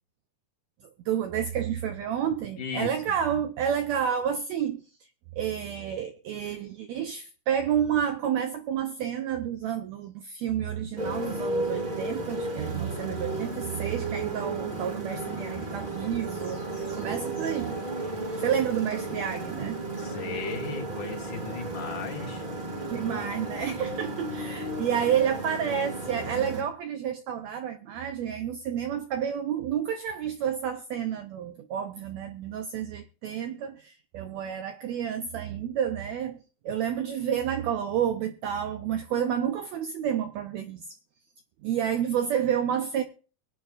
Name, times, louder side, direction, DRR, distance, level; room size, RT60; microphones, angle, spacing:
voice 1, 1.0-4.8 5.3-17.8 18.4-19.8 22.9-36.4 36.6-40.8 41.6-43.0, right 9 dB, 80° right, 1.6 m, -30 dB
voice 2, 2.6-2.9 20.0-22.4, left 5 dB, 70° left, 3.8 m, -36 dB
Motorcycle, 11.0-26.6, right 2 dB, 20° right, 1.7 m, -34 dB
22.5 x 8.9 x 2.4 m
omnidirectional pair, 3.8 m